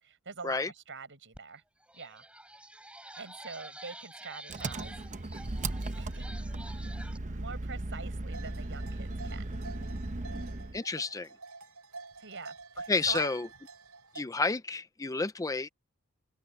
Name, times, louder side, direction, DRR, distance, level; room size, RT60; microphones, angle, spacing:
voice 1, 0.0-1.6 1.9-2.3 3.2-4.9 6.0-6.3 7.3-9.6 12.2-13.3, right 5 dB, 60° right, 6.6 m, -44 dB
sound 1, 1.3-1.4 1.8-7.2, right 1 dB, 5° right, 7.7 m, -49 dB
Engine, 4.5-10.8, right 2 dB, 35° right, 0.9 m, -37 dB
sound 2, 8.3-14.2, right 4 dB, 80° right, 7.7 m, -47 dB
voice 2, 10.7-11.3 12.9-13.5 14.1-15.7, left 3 dB, 15° left, 0.5 m, -30 dB
open air
head